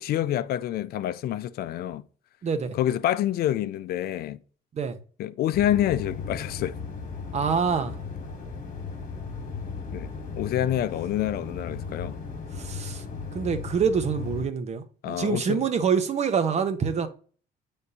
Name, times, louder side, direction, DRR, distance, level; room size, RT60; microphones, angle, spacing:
voice 1, 0.0-2.0 2.7-4.4 5.2-6.8 9.9-12.2 15.0-15.6, left 12 dB, 65° left, 0.5 m, -27 dB
voice 2, 2.4-2.8 4.7-5.0 7.3-8.0 12.5-13.0 13.3-17.1, right 6 dB, 40° right, 0.9 m, -26 dB
sound 1, 5.5-14.5, left 5 dB, 50° left, 1.8 m, -36 dB
9.5 x 3.5 x 2.8 m
cardioid pair, 110°, 17 cm